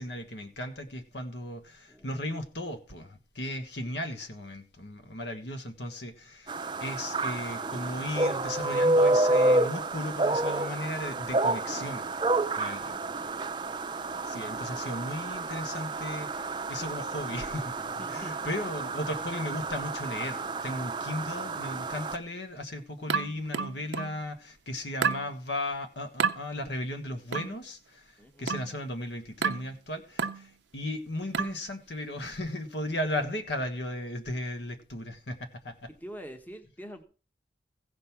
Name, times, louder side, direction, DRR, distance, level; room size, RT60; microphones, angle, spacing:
voice 1, 0.0-6.5 6.8-12.0 12.6-13.0 14.2-28.1 28.4-35.9, left 1 dB, 70° left, 1.5 m, -36 dB
voice 2, 1.9-2.2 13.1-13.4 18.0-18.4 28.2-28.6 35.9-37.0, equal, 10° left, 0.9 m, -45 dB
sound 1, 6.5-22.2, right 2 dB, 25° right, 0.6 m, -29 dB
sound 2, 23.1-24.2 25.0-25.3 26.2-26.4 27.3-27.6 28.5-28.8 29.4-29.7 30.2-30.5 31.3-31.6, right 6 dB, 75° right, 0.6 m, -30 dB
15.5 x 5.3 x 5.9 m
head